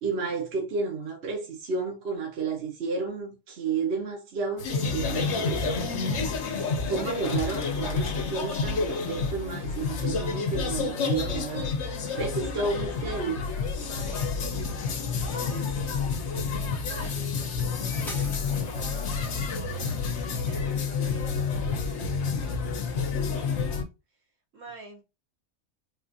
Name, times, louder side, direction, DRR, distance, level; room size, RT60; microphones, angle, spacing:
voice 1, 0.0-5.8 6.2-6.6 6.9-11.7 12.1-13.4, right 4 dB, 55° right, 1.1 m, -31 dB
sound 1, 4.6-23.8, left 5 dB, 60° left, 1.0 m, -29 dB
voice 2, 13.8-14.2 14.6-16.3 16.8-19.8 20.5-23.9 24.5-25.0, right 1 dB, 70° right, 1.8 m, -48 dB
sound 2, 13.9-18.9, equal, ahead, 0.8 m, -49 dB
4.2 x 2.5 x 2.6 m
omnidirectional pair, 1.4 m